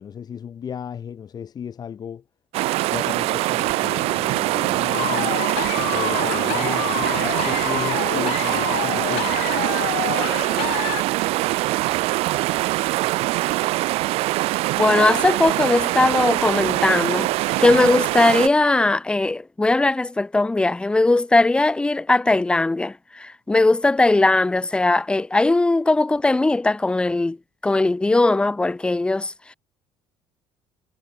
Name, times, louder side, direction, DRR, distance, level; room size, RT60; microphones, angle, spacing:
voice 1, 0.0-2.2 2.9-5.4 5.7-9.4, left 8 dB, 40° left, 4.8 m, -34 dB
sound 1, 2.5-18.5, right 19 dB, 75° right, 1.9 m, -23 dB
sound 2, 4.9-11.0, left 26 dB, 85° left, 2.8 m, -28 dB
voice 2, 14.8-27.4 27.6-29.3, left 2 dB, 10° left, 0.6 m, -19 dB
cardioid pair, 115°, 10 cm